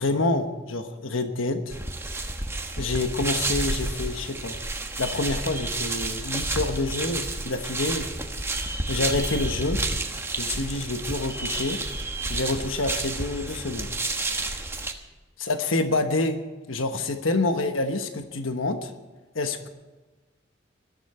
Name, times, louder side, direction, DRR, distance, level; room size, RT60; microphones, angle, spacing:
voice 1, 0.0-1.8 2.8-4.6 5.0-8.1 8.9-9.8 10.4-11.8 12.3-13.9 15.4-16.4 16.7-18.9 19.3-19.7, left 2 dB, 85° left, 7 dB, 1.2 m, -27 dB
sound 1, 1.7-14.9, right 2 dB, 15° right, 1.3 m, -30 dB
21.5 x 13.5 x 4.4 m, 1.2 s
head